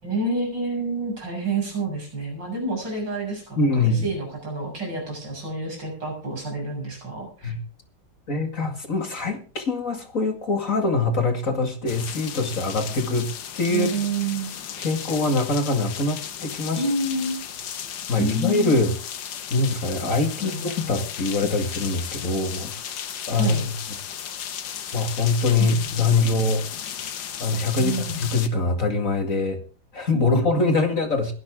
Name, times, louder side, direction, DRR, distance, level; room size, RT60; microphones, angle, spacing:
voice 1, 0.0-7.6 13.7-14.5 16.8-17.4 18.2-18.7 20.4-21.0 23.4-23.7 25.6-26.1 27.8-28.3 30.1-30.5, right 2 dB, 70° right, 1 dB, 7.9 m, -29 dB
voice 2, 3.6-4.1 7.4-7.6 8.3-13.3 13.6-13.9 14.8-16.9 18.1-18.9 19.5-20.6 20.9-23.0 23.3-23.6 24.9-26.6 27.4-27.9 28.2-29.6 29.9-31.3, left 3 dB, 45° left, 5 dB, 2.5 m, -23 dB
sound 1, 11.9-28.5, left 9 dB, 80° left, 1.8 m, -35 dB
20.5 x 12.0 x 3.7 m, 0.37 s
omnidirectional pair, 2.0 m